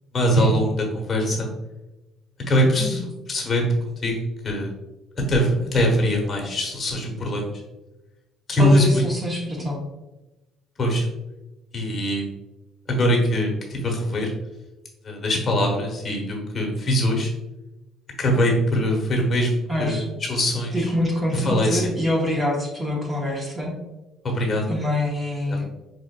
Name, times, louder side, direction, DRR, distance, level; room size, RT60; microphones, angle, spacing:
voice 1, 0.1-1.5 2.5-3.0 3.3-3.6 4.0-4.2 4.4-4.7 5.3-7.6 8.5-9.0 10.8-11.1 11.7-12.2 12.9-14.3 15.0-17.3 18.2-20.0 20.3-20.9 21.3-21.9 24.2-24.6 25.5-25.7, equal, 35° left, 0 dB, 1.1 m, -22 dB
voice 2, 8.6-9.8 19.7-20.1 20.7-23.7 24.7-25.6, left 1 dB, 20° right, -2 dB, 0.9 m, -25 dB
4.9 x 2.4 x 2.2 m, 1.0 s
cardioid pair, 95°, 0 cm